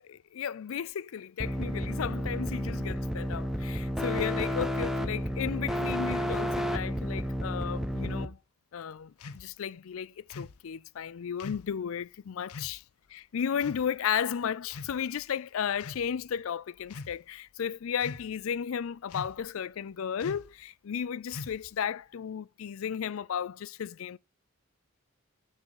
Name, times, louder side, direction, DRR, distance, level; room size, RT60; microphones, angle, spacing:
voice 1, 0.0-8.4 8.7-12.8 13.1-24.2, left 8 dB, 70° left, 0.4 m, -34 dB
sound 1, 1.4-8.3, equal, ahead, 0.5 m, -31 dB
sound 2, 9.2-9.5 10.3-10.6 11.4-11.7 12.5-12.8 13.6-13.9 14.7-15.2 15.8-16.1 16.8-17.2 18.0-18.4 19.1-19.5 20.2-20.5 21.3-21.8, left 3 dB, 85° left, 0.7 m, -42 dB
10.0 x 3.7 x 6.4 m
head